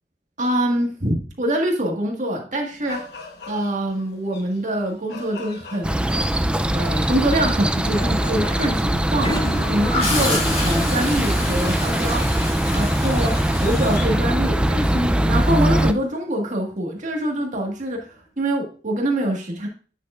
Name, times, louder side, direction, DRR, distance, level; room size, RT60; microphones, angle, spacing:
voice 1, 0.4-3.0 3.5-6.1 6.7-9.3 9.7-12.3 12.7-19.7, right 1 dB, 45° right, 1 dB, 1.7 m, -24 dB
sound 1, 2.7-15.9, left 3 dB, 65° left, 1.1 m, -42 dB
sound 2, 5.8-15.9, right 1 dB, 5° right, 0.3 m, -21 dB
Gurgling / Toilet flush, 9.2-14.9 17.0-17.2, left 2 dB, 35° left, 2.3 m, -29 dB
9.0 x 6.5 x 2.4 m, 0.39 s
head